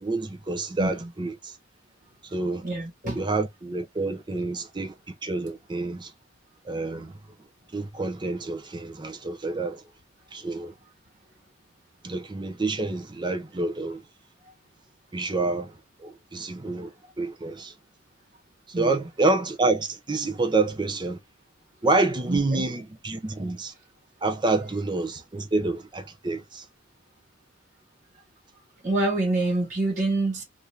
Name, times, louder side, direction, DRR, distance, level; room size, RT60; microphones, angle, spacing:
voice 1, 0.0-1.5 2.3-2.6 3.1-4.9 5.2-6.1 6.7-7.1 7.7-9.8 10.3-10.7 12.0-14.0 15.1-15.7 16.0-16.9 17.2-17.7 18.8-21.2 21.8-23.7 24.2-26.6, right 3 dB, 20° right, 0.5 m, -28 dB
voice 2, 0.8-1.1 2.6-3.2 18.7-19.0 22.3-22.7 28.8-30.4, right 2 dB, 40° right, 1.3 m, -26 dB
2.7 x 2.5 x 3.3 m
head